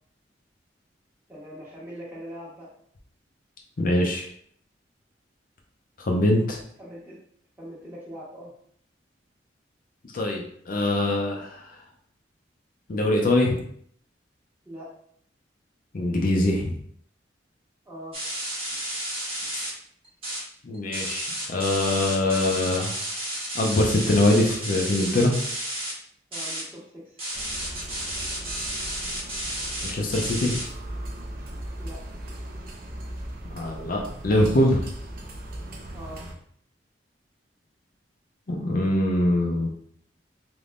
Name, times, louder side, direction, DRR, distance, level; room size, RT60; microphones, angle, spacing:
voice 1, 1.3-2.7 6.8-7.2 7.6-8.5 14.6-14.9 17.8-18.2 26.3-27.2 31.8-32.0 35.9-36.2, equal, 10° right, -6 dB, 1.2 m, -41 dB
voice 2, 3.8-4.2 6.0-6.6 10.1-11.6 12.9-13.6 15.9-16.8 19.5-19.7 20.6-22.9 23.5-25.3 29.8-30.6 33.5-34.9 38.5-39.7, left 1 dB, 50° left, 0 dB, 0.5 m, -23 dB
sound 1, 18.1-19.7 20.0-20.4 20.7-25.9 26.3-26.6 27.2-30.6, right 1 dB, 30° right, 1.2 m, -32 dB
sound 2, 27.3-36.3, right 1 dB, 55° right, 0.6 m, -38 dB
3.4 x 3.0 x 2.5 m, 0.63 s
head